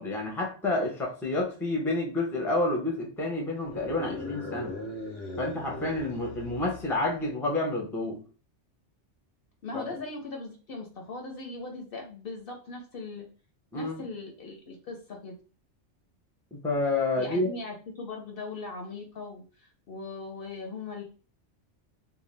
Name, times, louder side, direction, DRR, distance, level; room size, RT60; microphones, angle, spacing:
voice 1, 0.0-4.7 5.4-8.2 9.7-9.8 13.7-14.0 16.5-17.5, left 2 dB, ahead, 0 dB, 0.5 m, -29 dB
sound 1, 3.6-7.2, left 2 dB, 80° left, 1.0 m, -39 dB
voice 2, 9.6-13.3 13.7-15.4 17.2-21.0, left 3 dB, 60° left, 2 dB, 0.7 m, -39 dB
2.6 x 2.3 x 3.2 m, 0.37 s
omnidirectional pair, 1.2 m